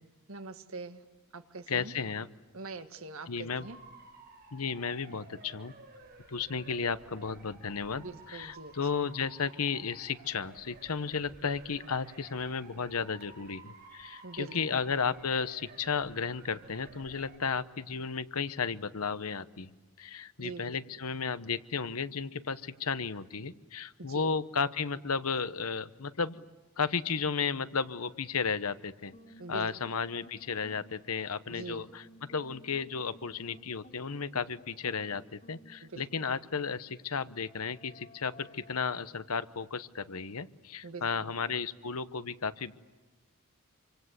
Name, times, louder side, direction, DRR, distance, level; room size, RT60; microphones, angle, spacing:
voice 1, 0.3-1.0 1.3-1.9 2.5-3.8 8.0-8.7 14.2-14.6 20.4-20.7 24.0-24.3 29.4-29.7 31.5-31.8 35.8-36.0 40.8-41.1, right 3 dB, 65° right, 8 dB, 1.6 m, -43 dB
voice 2, 1.7-2.3 3.3-3.7 4.5-5.7 6.3-19.7 20.0-26.5 26.8-29.1 29.5-42.7, left 5 dB, 80° left, 13 dB, 1.0 m, -34 dB
Motor vehicle (road) / Siren, 3.6-17.4, right 3 dB, 45° right, 5.2 m, -54 dB
sound 1, 29.1-36.6 37.2-38.8, left 1 dB, 35° left, 4.3 m, -56 dB
27.0 x 25.5 x 8.2 m, 1.2 s
head